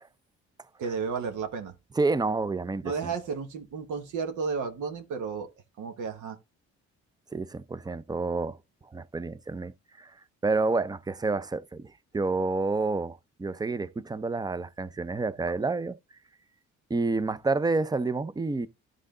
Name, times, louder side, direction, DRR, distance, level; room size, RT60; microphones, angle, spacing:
voice 1, 0.8-1.7 2.8-5.5 5.8-6.4, right 5 dB, 75° right, 1.3 m, -32 dB
voice 2, 2.0-3.1 7.3-8.6 8.9-10.1 10.4-16.0 16.9-18.7, right 3 dB, 15° right, 0.5 m, -29 dB
11.5 x 3.8 x 3.7 m
cardioid pair, 90°, 30 cm